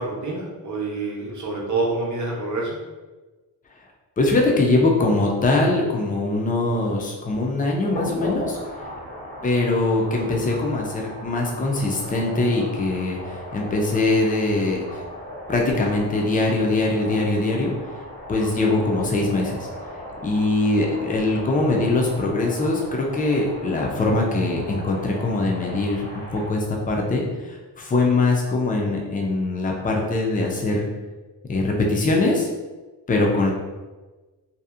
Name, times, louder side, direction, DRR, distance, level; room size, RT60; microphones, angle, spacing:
voice 1, 0.0-2.8, right 3 dB, 45° right, -3 dB, 0.7 m, -27 dB
voice 2, 4.2-8.6 9.4-13.2 13.5-14.9 15.5-17.7 18.3-19.6 20.2-26.1 26.3-27.2 27.8-30.9 31.5-32.5 33.1-33.5, left 2 dB, 20° left, 0 dB, 0.3 m, -22 dB
sound 1, 7.8-26.5, equal, 85° left, 1.3 m, -37 dB
2.7 x 2.4 x 2.4 m, 1.2 s
wide cardioid pair, 140°, 42 cm